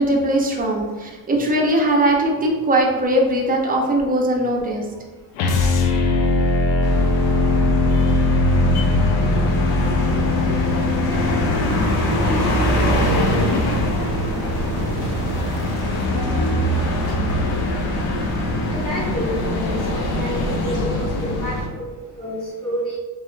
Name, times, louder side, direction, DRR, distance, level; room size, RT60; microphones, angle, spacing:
voice 1, 0.0-4.8, right 1 dB, 20° right, -1 dB, 0.7 m, -20 dB
sound 1, 5.4-11.5, left 2 dB, 90° left, 0.7 m, -19 dB
sound 2, 6.8-21.7, left 1 dB, 60° left, 0.9 m, -22 dB
sound 3, 11.6-16.7 20.7-20.8, right 4 dB, 80° right, 0.6 m, -33 dB
voice 2, 16.1-16.6 18.7-23.0, right 1 dB, 15° left, -9 dB, 1.0 m, -30 dB
3.6 x 3.0 x 3.2 m, 1.3 s
cardioid pair, 120°, 42 cm